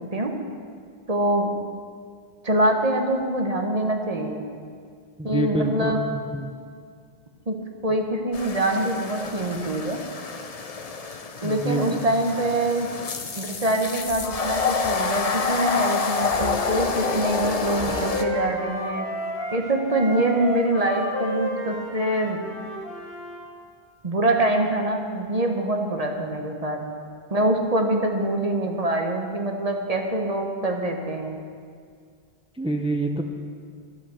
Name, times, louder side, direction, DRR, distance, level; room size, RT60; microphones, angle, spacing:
voice 1, 1.1-1.5 2.4-4.4 5.2-6.0 7.5-7.6 7.8-10.0 11.4-13.1 13.4-19.1 19.5-22.4 24.0-26.8 27.3-31.4, right 1 dB, 40° right, 3 dB, 1.2 m, -24 dB
voice 2, 5.2-5.9 6.3-6.5 11.4-12.0 32.6-33.2, right 2 dB, 5° right, 4 dB, 0.6 m, -26 dB
sound 1, 8.3-18.2, left 4 dB, 40° left, 0.7 m, -28 dB
Wind instrument woodwind instrument, 16.3-23.4, left 1 dB, 60° left, 2.2 m, -33 dB
12.0 x 8.3 x 6.8 m, 2.1 s
omnidirectional pair, 1.0 m